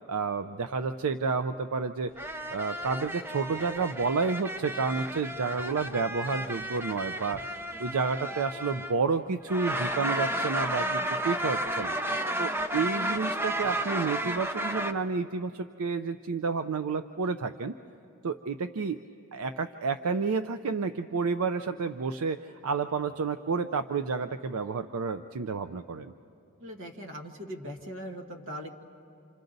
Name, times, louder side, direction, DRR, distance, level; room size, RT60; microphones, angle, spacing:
voice 1, 0.1-2.1 2.5-7.4 7.8-11.9 12.4-17.8 18.2-19.0 19.3-26.1, right 4 dB, 80° right, 10 dB, 0.5 m, -30 dB
sound 1, 2.2-9.1 9.5-14.9, right 1 dB, 10° right, 0.5 m, -32 dB
voice 2, 26.6-28.7, equal, 60° right, 2 dB, 1.6 m, -40 dB
29.0 x 27.0 x 4.0 m, 2.8 s
head